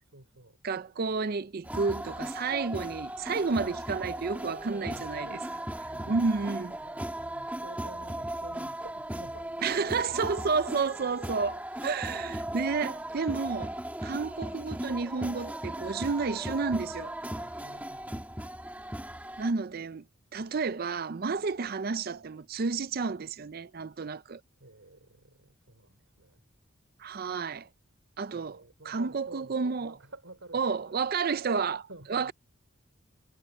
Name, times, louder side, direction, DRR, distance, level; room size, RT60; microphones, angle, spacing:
voice 1, 0.1-0.6 4.5-5.5 5.9-6.5 6.8-10.2 17.2-18.5 24.6-26.4 28.3-31.0 31.9-32.3, right 2 dB, 80° right, 3.4 m, -50 dB
voice 2, 0.6-5.3 6.1-6.8 9.6-13.7 14.0-17.1 19.4-20.0 20.3-24.4 27.0-27.7 28.2-28.6 28.9-29.9 30.5-32.3, right 4 dB, 45° right, 0.5 m, -31 dB
sound 1, 1.6-19.5, right 1 dB, 10° right, 1.6 m, -37 dB
head